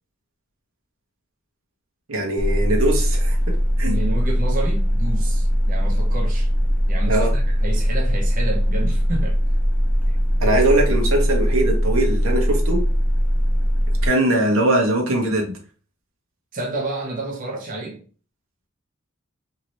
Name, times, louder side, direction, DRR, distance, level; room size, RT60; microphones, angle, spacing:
voice 1, 2.1-3.9 7.1-7.3 10.4-12.8 14.0-15.5, right 1 dB, 85° right, 1.0 m, -21 dB
sound 1, 2.4-14.1, equal, 10° left, 0.5 m, -20 dB
voice 2, 3.8-6.5 6.9-9.4 16.5-18.0, right 2 dB, 45° right, 0.7 m, -30 dB
2.8 x 2.7 x 3.0 m
head